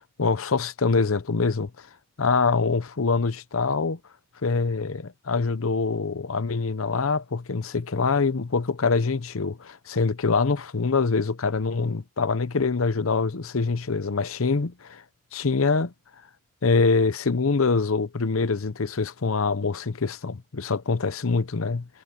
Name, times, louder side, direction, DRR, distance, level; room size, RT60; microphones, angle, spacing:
voice 1, 0.2-1.7 2.2-4.0 4.4-15.0 15.3-15.9 16.6-21.9, left 4 dB, 80° left, 0.8 m, -24 dB
head